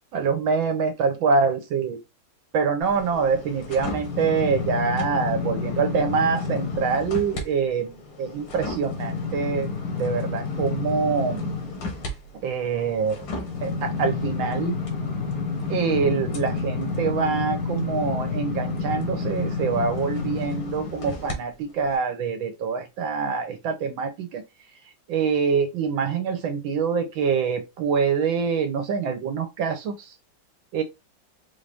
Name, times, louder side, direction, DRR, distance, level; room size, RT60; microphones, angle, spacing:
voice 1, 0.1-2.0 2.5-9.7 9.9-11.5 12.4-13.2 13.6-14.8 15.7-24.4 25.1-30.1 30.7-30.8, right 5 dB, 80° right, 1.7 m, -25 dB
sound 1, 2.8-7.4 7.8-21.4 21.8-22.0, left 4 dB, 75° left, 1.8 m, -30 dB
4.6 x 2.6 x 3.4 m
omnidirectional pair, 2.1 m